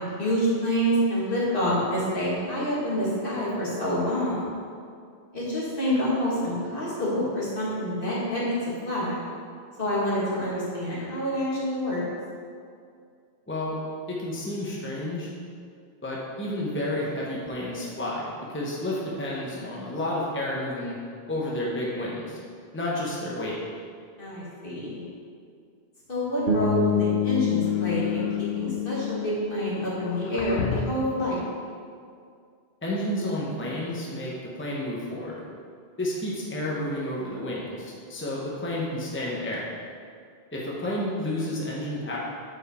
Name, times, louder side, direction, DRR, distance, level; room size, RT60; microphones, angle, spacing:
voice 1, 0.0-4.5 5.3-8.5 8.8-9.2 9.8-12.0 24.2-25.0 26.1-31.4, equal, 60° left, -7 dB, 2.2 m, -27 dB
voice 2, 13.5-13.8 14.1-15.3 16.0-21.0 21.3-22.4 22.7-23.6 32.8-34.3 34.6-35.4 36.0-39.7 40.5-42.2, left 1 dB, 10° left, -5 dB, 1.0 m, -31 dB
Bass guitar, 26.5-30.6, left 6 dB, 75° right, 1.2 m, -27 dB
sound 1, 27.6-28.5 30.0-31.2, left 5 dB, 85° left, 0.9 m, -34 dB
8.9 x 4.7 x 4.2 m, 2.2 s
omnidirectional pair, 1.0 m